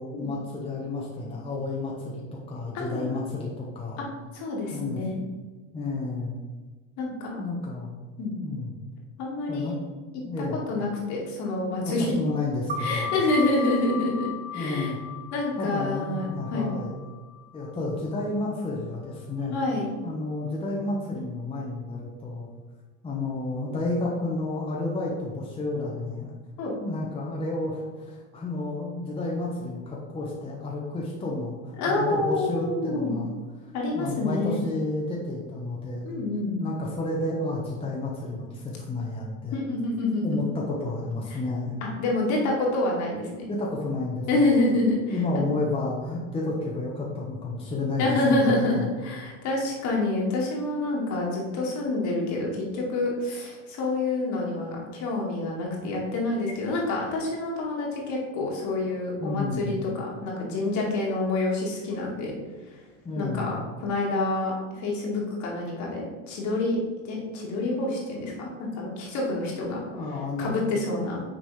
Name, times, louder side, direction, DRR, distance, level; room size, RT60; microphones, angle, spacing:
voice 1, 0.0-2.2 2.5-4.0 4.7-5.0 5.7-6.4 7.4-8.0 8.4-8.8 9.5-9.7 10.2-10.6 11.7-13.1 14.5-15.0 15.6-17.0 17.5-19.6 20.0-22.5 23.0-26.3 26.8-33.3 33.6-36.0 36.6-39.6 40.2-41.7 43.5-44.5 45.1-48.2 48.5-48.9 59.2-59.9 63.0-63.5 69.9-70.6, left 2 dB, 15° left, -3 dB, 1.2 m, -31 dB
voice 2, 2.7-3.1 4.0-4.1 4.3-5.2 7.0-7.4 8.2-8.4 9.2-9.8 10.1-10.2 10.5-12.2 12.8-14.9 15.3-16.7 19.5-19.9 26.6-26.7 31.8-33.1 33.7-34.6 36.0-36.6 39.5-40.5 41.3-41.4 41.8-43.5 44.3-45.5 48.0-62.3 63.2-66.8 67.0-69.8 70.4-71.2, left 2 dB, 55° left, -2 dB, 2.2 m, -27 dB
sound 1, 12.7-17.9, left 6 dB, 20° right, 1.0 m, -36 dB
6.4 x 4.0 x 5.0 m, 1.3 s
supercardioid pair, 120°, 35 cm